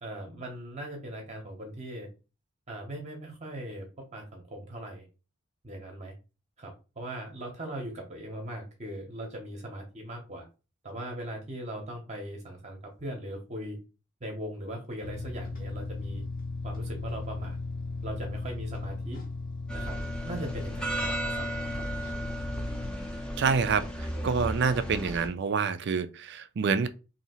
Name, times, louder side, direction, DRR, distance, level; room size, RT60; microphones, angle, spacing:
voice 1, 0.0-2.1 2.7-5.1 5.6-6.1 6.6-10.5 10.8-13.8 14.2-16.2 16.6-17.6 18.0-19.2 19.7-20.0 20.2-21.9, right 1 dB, 30° right, 0.8 m, -39 dB
sound 1, 15.0-22.9, left 3 dB, 40° left, 0.7 m, -37 dB
sound 2, 19.7-25.3, right 1 dB, 5° left, 0.6 m, -34 dB
voice 2, 23.4-26.9, right 5 dB, 50° right, 0.4 m, -27 dB
2.8 x 2.7 x 4.2 m
head